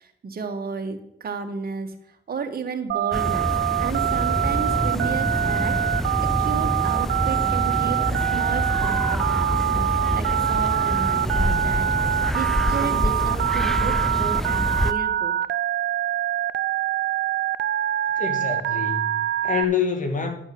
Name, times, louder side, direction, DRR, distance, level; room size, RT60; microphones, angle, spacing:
voice 1, 0.0-15.3, right 5 dB, 50° right, 1.9 m, -33 dB
Telephone, 2.9-19.6, right 11 dB, 65° right, 0.5 m, -24 dB
sound 1, 3.1-14.9, equal, ahead, 0.6 m, -26 dB
voice 2, 18.2-20.4, left 6 dB, 40° left, 2.3 m, -26 dB
11.0 x 5.3 x 7.9 m
cardioid pair, 80°, 19 cm